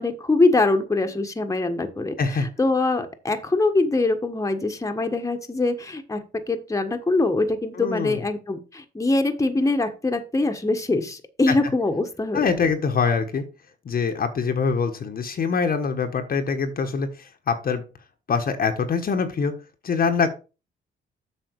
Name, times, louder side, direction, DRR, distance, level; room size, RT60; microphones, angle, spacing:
voice 1, 0.0-12.4, left 2 dB, 15° left, 6 dB, 1.4 m, -23 dB
voice 2, 7.7-8.2 11.5-11.6 12.3-13.4 13.8-17.8 18.3-19.6 19.8-20.3, left 5 dB, 50° left, 6 dB, 1.3 m, -24 dB
7.9 x 6.2 x 4.7 m, 0.32 s
cardioid pair, 90°, 20 cm